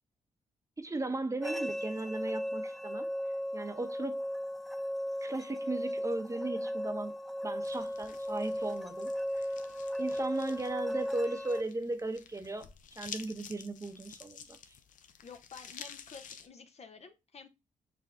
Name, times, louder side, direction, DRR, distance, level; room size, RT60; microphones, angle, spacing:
voice 1, 0.8-3.1 3.5-4.2 5.2-7.1 7.4-9.5 10.0-12.7 13.0-14.6, right 2 dB, 20° right, 0.9 m, -36 dB
sound 1, 1.4-11.6, equal, ahead, 0.4 m, -36 dB
sound 2, 7.6-16.5, left 8 dB, 75° left, 0.6 m, -51 dB
voice 2, 15.2-17.5, left 5 dB, 50° left, 0.9 m, -51 dB
5.9 x 2.5 x 3.4 m
supercardioid pair, 50°, 14 cm